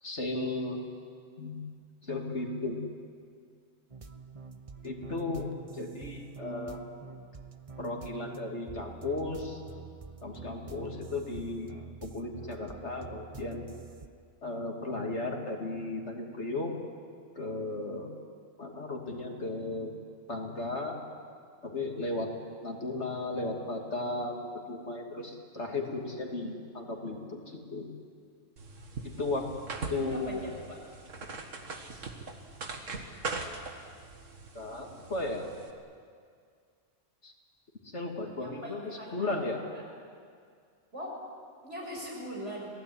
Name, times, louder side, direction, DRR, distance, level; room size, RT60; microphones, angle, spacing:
voice 1, 0.0-0.8 1.4-1.6 2.0-2.8 4.8-6.8 7.8-9.6 10.2-13.6 14.4-16.7 17.4-18.1 18.6-19.9 20.3-21.0 21.6-22.3 22.6-27.9 29.0-29.5 29.9-30.4 34.5-35.4 37.2-37.3 37.8-38.8 39.1-39.6, left 2 dB, 65° left, 1 dB, 3.2 m, -35 dB
sound 1, 3.9-14.1, right 5 dB, 30° right, 0.9 m, -47 dB
sound 2, 28.6-35.7, right 3 dB, 80° right, 2.3 m, -41 dB
voice 2, 29.9-30.8 38.4-39.5 40.9-41.1 41.6-42.7, equal, 65° right, -2 dB, 6.4 m, -41 dB
27.0 x 18.0 x 9.6 m, 2.2 s
omnidirectional pair, 1.3 m